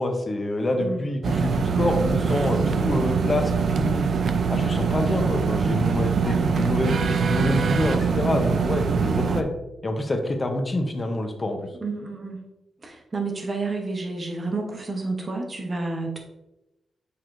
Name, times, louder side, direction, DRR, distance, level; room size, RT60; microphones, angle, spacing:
voice 1, 0.0-4.1 4.5-9.5 9.8-11.6, left 1 dB, 25° left, 4 dB, 0.7 m, -26 dB
sound 1, 1.2-9.4, right 5 dB, 50° right, 0.4 m, -23 dB
voice 2, 6.1-6.9 11.8-12.4 12.8-16.2, right 3 dB, 25° right, 2 dB, 0.9 m, -30 dB
8.1 x 4.5 x 2.6 m, 0.94 s
wide cardioid pair, 165°, 0 cm